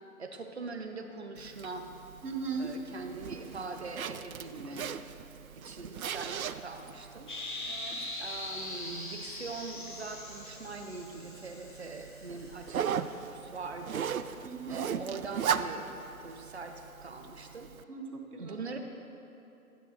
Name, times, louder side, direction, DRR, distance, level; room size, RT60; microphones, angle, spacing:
voice 1, 0.2-1.9 2.6-4.9 5.3-7.3 8.2-14.2 14.7-15.9 16.2-17.7 18.4-18.8, right 3 dB, 45° right, 5 dB, 0.9 m, -42 dB
Zipper (clothing), 1.4-17.8, right 8 dB, 70° right, 0.5 m, -39 dB
voice 2, 2.2-2.7 7.7-8.0 14.4-15.0 17.9-18.6, right 5 dB, 85° right, 1 dB, 1.9 m, -38 dB
sound 1, 7.3-13.1, left 2 dB, 35° left, 1.1 m, -42 dB
15.0 x 9.5 x 3.3 m, 2.9 s
hypercardioid pair, 180°, 44 cm